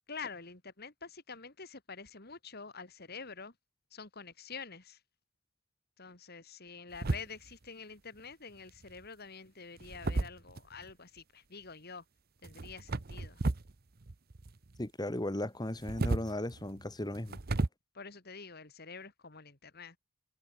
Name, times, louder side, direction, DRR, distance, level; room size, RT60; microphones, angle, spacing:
voice 1, 0.1-3.5 3.9-5.0 6.0-12.0 12.4-13.4 17.9-20.0, left 5 dB, 45° left, 2.5 m, -47 dB
sound 1, 6.9-7.6 8.7-9.1 9.8-10.9 12.4-13.7 14.0-14.9 15.7-17.7, right 2 dB, 45° right, 0.9 m, -34 dB
voice 2, 14.8-17.4, left 1 dB, 20° left, 1.4 m, -36 dB
head